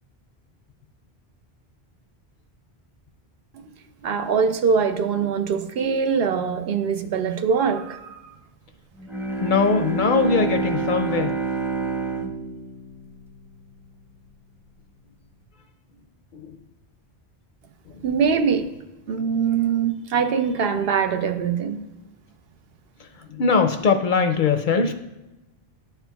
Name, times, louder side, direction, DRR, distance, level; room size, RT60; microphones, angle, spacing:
voice 1, 4.0-8.2 18.0-18.7 19.1-21.8, right 6 dB, 75° right, 7 dB, 0.8 m, -23 dB
Bowed string instrument, 9.0-13.8, right 3 dB, 5° right, 0.6 m, -28 dB
voice 2, 9.4-11.4 19.1-19.3 23.3-24.9, left 5 dB, 60° left, 7 dB, 0.6 m, -21 dB
11.0 x 4.5 x 2.2 m, 1.0 s
omnidirectional pair, 1.1 m